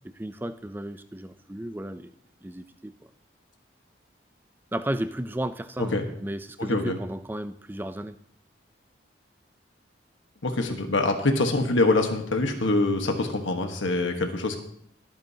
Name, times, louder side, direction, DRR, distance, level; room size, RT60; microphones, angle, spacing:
voice 1, 0.2-2.1 2.4-2.9 4.7-8.2, right 1 dB, 10° right, 11 dB, 0.4 m, -33 dB
voice 2, 6.6-7.0 10.4-14.6, left 2 dB, 85° left, 4 dB, 1.3 m, -24 dB
22.0 x 9.0 x 2.8 m, 0.68 s
head